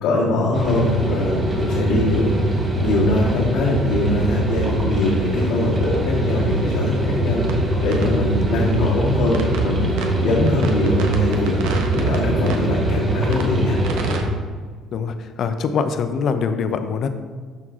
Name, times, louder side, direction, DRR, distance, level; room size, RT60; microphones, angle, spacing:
voice 1, 0.0-2.4 2.8-6.9 7.2-7.4 7.8-11.5 11.9-13.8 14.1-14.2, left 2 dB, 80° left, -8 dB, 2.0 m, -22 dB
sound 1, 0.5-14.2, right 1 dB, 25° right, 1.6 m, -22 dB
sound 2, 7.5-7.6 7.9-8.1 9.3-9.7 10.0-10.1 10.5-12.2 12.5-12.6 13.3-13.5 13.8-14.2, right 5 dB, 85° right, 1.1 m, -30 dB
voice 2, 14.9-17.1, left 6 dB, 50° left, 9 dB, 0.7 m, -23 dB
12.0 x 4.6 x 3.7 m, 1.5 s
cardioid pair, 120°, 0 cm